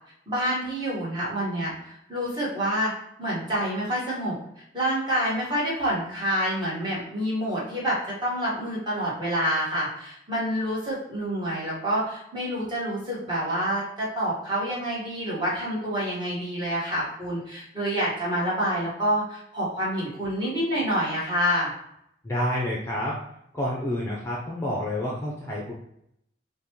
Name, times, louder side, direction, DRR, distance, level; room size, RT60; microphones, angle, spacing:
voice 1, 0.3-2.9 3.2-4.4 4.7-21.7, equal, 25° right, -7 dB, 1.5 m, -27 dB
voice 2, 22.2-23.2 23.5-25.7, left 1 dB, 15° left, -4 dB, 0.6 m, -28 dB
5.4 x 2.2 x 3.0 m, 0.75 s
head